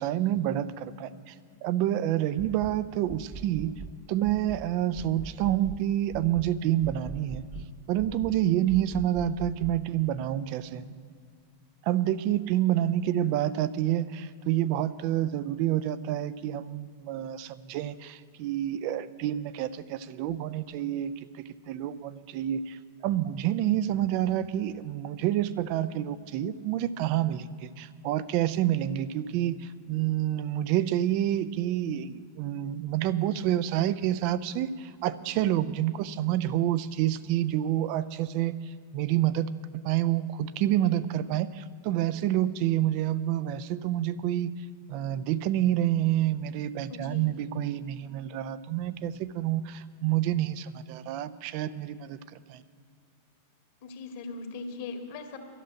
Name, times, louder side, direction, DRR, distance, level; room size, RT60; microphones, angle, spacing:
voice 1, 0.0-1.3 1.6-3.7 4.1-7.5 7.9-10.9 11.8-44.5 44.9-52.2 52.5-52.6, right 12 dB, 45° right, 14 dB, 0.5 m, -28 dB
sound 1, 2.4-2.8 3.1-3.9 4.2-4.7 4.9-5.8 6.1-6.5 6.8-7.7 8.0-8.4 8.7-9.8, right 4 dB, 5° right, 0.9 m, -41 dB
voice 2, 46.9-47.3 53.8-55.4, left 3 dB, 50° left, 4 dB, 1.7 m, -39 dB
12.0 x 7.4 x 9.9 m, 2.3 s
figure-of-eight pair, 90°, 0 cm